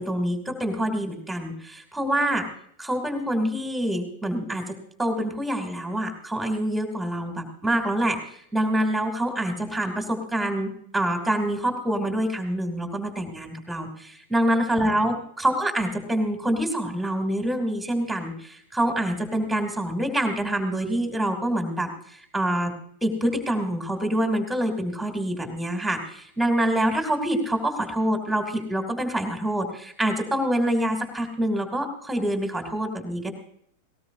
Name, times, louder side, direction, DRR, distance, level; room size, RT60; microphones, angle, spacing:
voice 1, 0.0-2.5 2.8-22.7 23.0-33.3, right 1 dB, 5° right, 5 dB, 2.9 m, -26 dB
19.0 x 18.5 x 2.8 m, 0.65 s
figure-of-eight pair, 90°, 0 cm